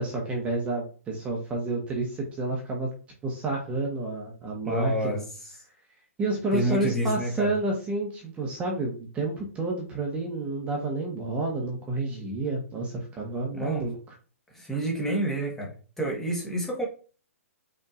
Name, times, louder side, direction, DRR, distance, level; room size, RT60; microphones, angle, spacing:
voice 1, 0.0-2.9 3.2-5.2 6.2-14.0, right 2 dB, 15° right, 1.1 m, -30 dB
voice 2, 4.6-5.2 6.5-7.5 13.5-13.9 14.5-16.9, right 1 dB, 5° left, 1.3 m, -29 dB
5.3 x 3.6 x 2.5 m
hypercardioid pair, 130°, 8 cm